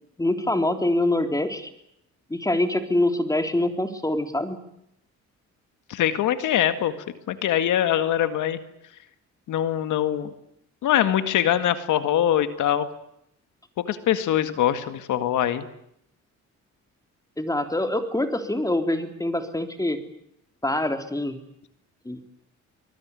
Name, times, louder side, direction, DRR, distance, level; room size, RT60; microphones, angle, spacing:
voice 1, 0.2-1.7 2.3-4.6 17.4-20.0 20.6-21.4 22.1-22.2, left 1 dB, 10° left, 6 dB, 3.6 m, -25 dB
voice 2, 5.9-6.9 7.3-8.6 9.5-10.3 10.8-12.9 13.9-15.7, left 11 dB, 80° left, 10 dB, 2.0 m, -23 dB
24.5 x 20.0 x 9.9 m, 0.77 s
cardioid pair, 90°, 30 cm